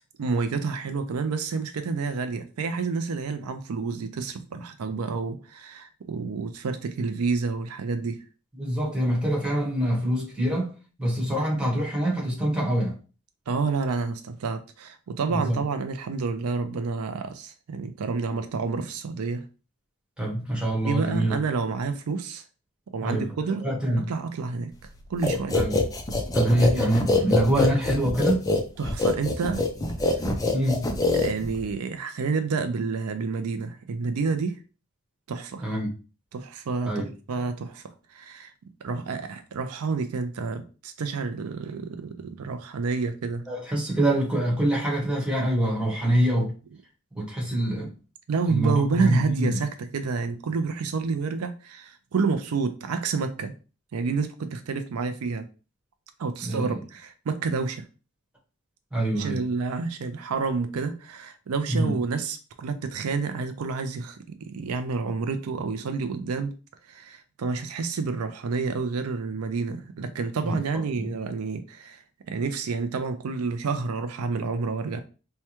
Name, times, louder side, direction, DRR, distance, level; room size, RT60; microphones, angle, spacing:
voice 1, 0.0-8.2 13.5-19.4 20.8-22.4 22.9-23.7 24.0-24.7 25.1-25.6 28.8-29.6 31.1-34.6 35.3-35.8 36.3-37.8 38.1-38.5 38.8-43.4 48.3-53.5 53.9-55.5 56.2-57.8 59.1-66.6 66.9-75.0, right 4 dB, 85° right, 0.4 m, -29 dB
voice 2, 8.6-10.7 11.0-13.0 15.3-15.6 20.2-21.4 23.0-23.3 23.6-24.0 25.5-25.7 26.3-28.4 30.5-30.9 35.6-35.9 36.8-37.1 43.5-46.5 47.1-47.9 48.5-49.6 56.4-56.8 58.9-59.4 61.7-61.9 70.4-70.5 71.0-71.1, right 1 dB, 5° right, 1.3 m, -25 dB
sound 1, 25.2-31.7, left 2 dB, 15° left, 0.5 m, -24 dB
4.5 x 2.2 x 2.9 m
head